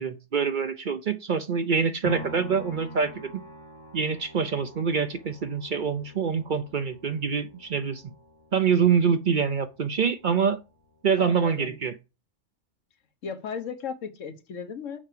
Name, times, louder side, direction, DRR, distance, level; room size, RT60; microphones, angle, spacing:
voice 1, 0.0-3.4 3.9-8.0 8.5-10.6 11.0-11.9, right 6 dB, 50° right, 0.7 m, -25 dB
sound 1, 2.0-10.2 10.6-10.7, left 1 dB, 40° left, 1.1 m, -45 dB
voice 2, 11.2-11.8 13.2-15.0, left 6 dB, 85° left, 1.4 m, -36 dB
7.3 x 4.6 x 6.7 m
omnidirectional pair, 1.3 m